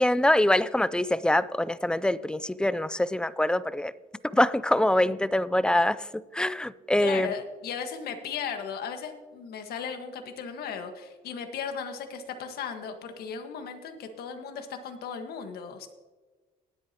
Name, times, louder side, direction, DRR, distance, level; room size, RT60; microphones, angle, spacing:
voice 1, 0.0-3.9 4.2-6.1 6.3-7.3, left 1 dB, 5° left, 0.4 m, -24 dB
voice 2, 7.0-15.9, left 6 dB, 65° left, 1.6 m, -36 dB
19.5 x 8.4 x 2.9 m
cardioid pair, 110°, 17 cm